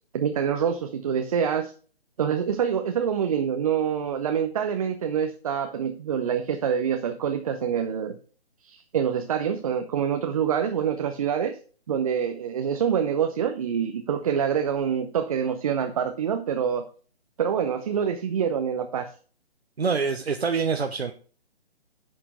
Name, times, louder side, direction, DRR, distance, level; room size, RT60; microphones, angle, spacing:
voice 1, 0.1-1.7 2.2-8.2 8.6-11.6 11.9-16.8 17.4-19.1, right 8 dB, 35° right, 6 dB, 0.8 m, -26 dB
voice 2, 19.8-21.1, right 5 dB, 75° right, 6 dB, 1.0 m, -25 dB
10.5 x 6.0 x 4.6 m, 0.40 s
figure-of-eight pair, 140°, 32 cm